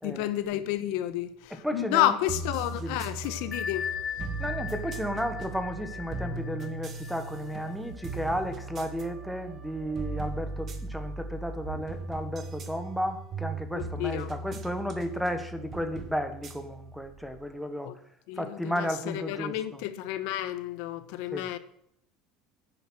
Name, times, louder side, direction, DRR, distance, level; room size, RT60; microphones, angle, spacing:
voice 1, 0.0-3.8 13.7-14.3 17.8-17.9 18.3-18.9 19.1-21.6, left 13 dB, 70° left, 1.2 m, -30 dB
voice 2, 1.6-2.2 2.8-3.0 4.4-17.9 18.4-19.8 21.3-21.5, equal, ahead, 1.2 m, -33 dB
sound 1, 2.3-17.5, right 3 dB, 30° right, 1.4 m, -38 dB
Bell, 3.5-8.9, left 7 dB, 20° left, 0.9 m, -39 dB
10.5 x 9.3 x 6.2 m
cardioid pair, 170°, 0 cm